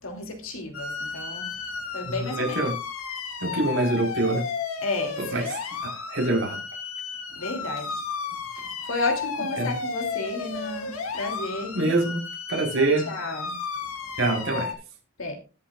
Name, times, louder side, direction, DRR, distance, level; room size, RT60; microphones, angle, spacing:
voice 1, 0.0-2.6 4.8-5.5 7.4-8.0 8.5-12.0 12.8-13.5 15.2-15.4, left 2 dB, 65° left, 2.7 m, -32 dB
sound 1, 0.7-14.7, left 5 dB, 85° left, 2.0 m, -33 dB
voice 2, 2.3-2.7 3.4-4.4 5.3-5.4 5.8-6.6 9.6-9.7 11.7-12.2 12.5-13.0 14.2-14.7, right 2 dB, 60° right, 4.1 m, -24 dB
20.0 x 7.5 x 2.4 m
head